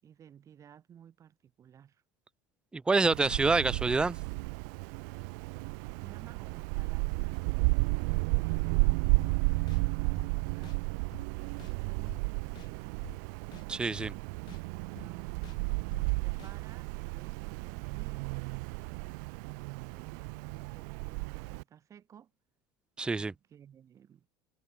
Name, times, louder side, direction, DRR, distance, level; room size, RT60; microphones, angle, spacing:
voice 1, 0.0-2.0 5.9-7.4 8.3-11.1 11.7-13.0 14.9-15.4 16.1-18.4 19.4-22.3 23.2-24.3, right 9 dB, 30° right, 6.5 m, -56 dB
voice 2, 2.7-4.2 13.7-14.2 23.0-23.3, right 3 dB, 10° right, 0.4 m, -27 dB
Wind, 3.0-21.6, right 33 dB, 80° right, 0.5 m, -33 dB
sound 1, 9.2-9.3 9.7-9.8 10.2-10.3 10.6-10.8 11.1-11.2 11.6-11.7 12.1-12.2 12.6-12.7 13.0-13.2 13.5-13.6 14.0-14.1 14.5-14.6 15.0-15.1 15.4-15.6 15.9-16.0 16.4-16.5, left 14 dB, 45° left, 1.7 m, -49 dB
cardioid pair, 140°, 10 cm